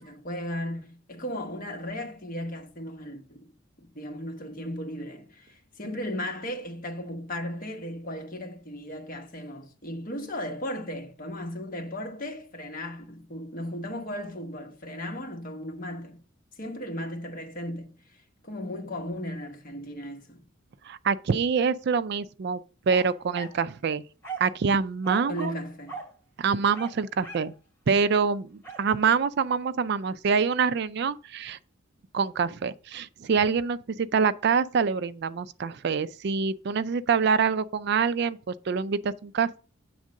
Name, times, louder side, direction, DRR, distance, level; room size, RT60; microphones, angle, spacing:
voice 1, 0.0-3.5 3.8-16.2 16.6-20.5 25.3-26.0, left 1 dB, 45° left, 1.2 m, -36 dB
voice 2, 20.9-22.6 22.9-24.0 24.4-25.6 26.4-27.5 27.9-31.6 32.1-39.6, right 5 dB, 55° right, 0.4 m, -25 dB
sound 1, 22.9-23.6 24.2-24.6 25.0-25.6 25.9-26.1 26.7-27.5 28.6-28.9, right 4 dB, 10° left, 2.6 m, -39 dB
8.5 x 3.7 x 6.3 m
head